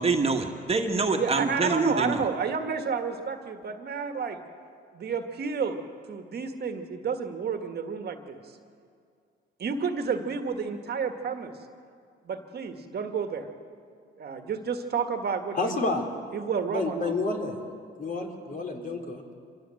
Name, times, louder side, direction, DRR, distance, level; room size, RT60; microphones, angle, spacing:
voice 1, 0.0-2.2, right 3 dB, 30° right, 3 dB, 1.8 m, -26 dB
voice 2, 1.2-4.4 4.9-5.8 6.1-8.4 9.6-11.5 12.3-13.5 14.2-15.9 16.3-17.1, right 5 dB, 55° right, 6 dB, 1.8 m, -30 dB
voice 3, 15.5-16.0 16.7-17.5 18.0-19.2, left 3 dB, 45° left, 1 dB, 3.6 m, -29 dB
26.0 x 17.0 x 7.8 m, 2.2 s
cardioid pair, 90°, 20 cm